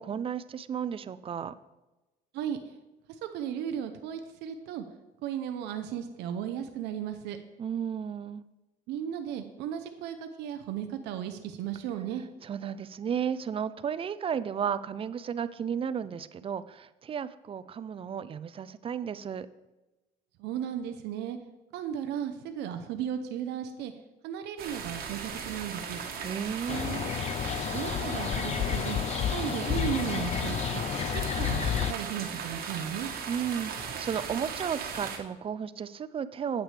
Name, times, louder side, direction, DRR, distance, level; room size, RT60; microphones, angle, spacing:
voice 1, 0.0-1.5 7.6-8.4 12.4-19.5 26.2-27.1 33.3-36.6, right 8 dB, 35° right, 15 dB, 0.4 m, -33 dB
voice 2, 3.3-4.8 5.2-7.4 8.9-12.2 20.4-21.4 21.7-23.9 24.2-26.0 27.7-29.0 29.3-30.8 31.4-33.1, right 9 dB, 85° right, 7 dB, 0.7 m, -35 dB
sound 1, 24.6-35.2, right 6 dB, 60° right, 1.3 m, -38 dB
sound 2, 26.7-31.9, left 9 dB, 40° left, 0.4 m, -31 dB
9.1 x 8.3 x 3.3 m, 1.1 s
cardioid pair, 110°, 17 cm